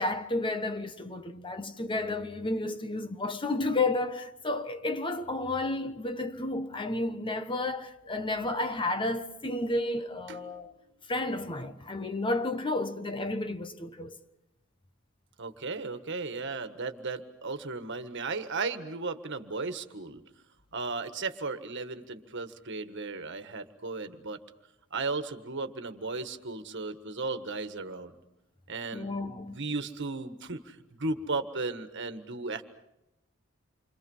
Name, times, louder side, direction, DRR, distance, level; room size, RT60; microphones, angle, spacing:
voice 1, 0.0-10.8 11.1-14.2 28.9-29.6, left 2 dB, 25° left, 1.2 m, -32 dB
voice 2, 10.3-10.7 15.4-20.2 20.7-24.4 24.9-28.1 28.7-32.7, right 3 dB, 60° right, 1.7 m, -35 dB
29.0 x 25.5 x 5.6 m
head